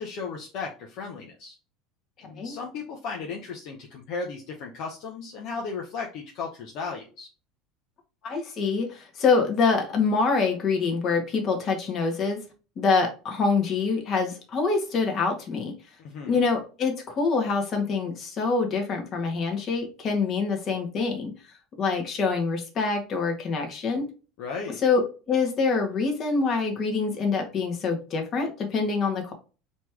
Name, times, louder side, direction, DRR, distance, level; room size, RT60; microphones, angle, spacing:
voice 1, 0.0-1.5 2.2-7.3 16.0-16.4 24.4-24.8, left 4 dB, 60° left, 0 dB, 1.0 m, -35 dB
voice 2, 2.2-2.6 8.2-12.4 12.8-15.7 16.3-21.3 21.8-24.1 24.8-29.3, left 4 dB, 45° left, 3 dB, 1.6 m, -25 dB
4.2 x 3.1 x 3.4 m, 0.33 s
supercardioid pair, 105°, 0 cm